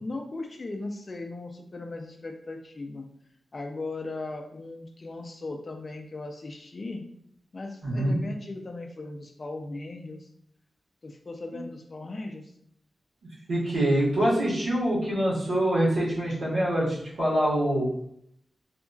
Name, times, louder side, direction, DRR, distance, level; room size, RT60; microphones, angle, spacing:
voice 1, 0.0-3.1 3.5-7.0 7.5-10.3 11.0-12.5, left 2 dB, 35° left, 3 dB, 0.3 m, -37 dB
voice 2, 7.8-8.2 13.5-17.9, right 1 dB, 90° right, -7 dB, 1.3 m, -25 dB
2.8 x 2.3 x 2.6 m, 0.70 s
wide cardioid pair, 160°, 0 cm